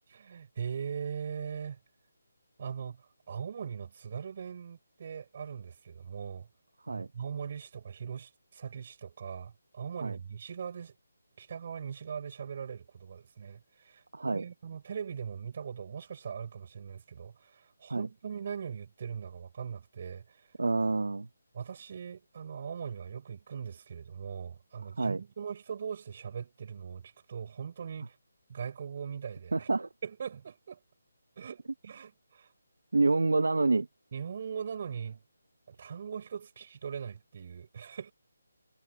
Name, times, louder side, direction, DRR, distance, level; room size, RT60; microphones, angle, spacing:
voice 1, 0.1-1.8 2.6-6.5 6.9-10.9 11.4-20.5 21.5-28.2 28.5-29.7 30.0-30.8 31.4-32.5 34.1-35.2 35.7-38.1, right 7 dB, 45° right, 6.1 m, -40 dB
voice 2, 14.1-14.4 17.9-18.1 20.6-21.3 25.0-25.2 29.5-29.9 32.9-33.9, right 3 dB, 80° right, 1.0 m, -27 dB
figure-of-eight pair, 155°, 0 cm